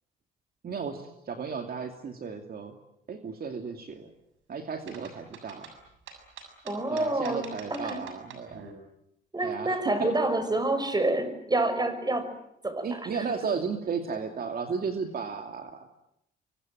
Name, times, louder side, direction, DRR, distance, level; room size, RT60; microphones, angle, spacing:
voice 1, 0.6-2.8 3.1-4.1 4.5-5.7 6.9-8.7 9.4-10.1 12.8-15.9, right 5 dB, 50° right, 5 dB, 2.6 m, -34 dB
sound 1, 4.9-8.7, right 6 dB, 80° right, 6.8 m, -46 dB
voice 2, 6.6-7.4 7.7-8.0 9.3-12.3 12.6-12.9, right 2 dB, 20° right, 10 dB, 5.7 m, -27 dB
26.0 x 24.0 x 9.1 m, 0.77 s
cardioid pair, 90°, 20 cm